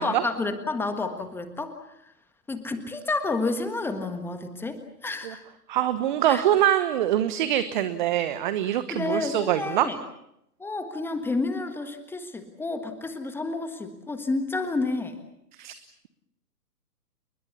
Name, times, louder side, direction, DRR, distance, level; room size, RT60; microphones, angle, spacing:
voice 1, 0.0-1.7 2.5-5.4 6.3-6.4 8.9-10.0 10.6-15.2, left 3 dB, 5° left, 8 dB, 1.5 m, -30 dB
voice 2, 5.7-9.9 15.6-15.7, right 11 dB, 30° right, 12 dB, 1.1 m, -24 dB
29.5 x 21.5 x 7.0 m, 0.79 s
figure-of-eight pair, 130°, 48 cm